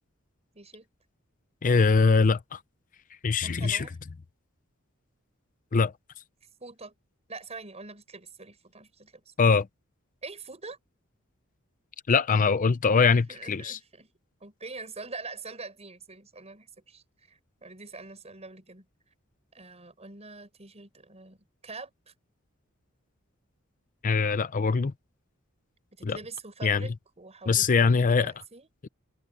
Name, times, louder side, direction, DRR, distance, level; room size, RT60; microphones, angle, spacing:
voice 1, 0.6-0.9 3.4-4.0 6.6-6.9 7.3-9.3 10.2-10.8 13.1-14.1 14.4-18.9 19.5-21.4 21.6-22.1 26.0-28.7, right 3 dB, 30° right, 7.0 m, -44 dB
voice 2, 1.6-2.6 3.2-3.9 5.7-5.9 9.4-9.7 12.1-13.8 24.0-24.9 26.0-26.2 26.6-26.9 27.5-28.3, left 5 dB, 40° left, 0.5 m, -22 dB
head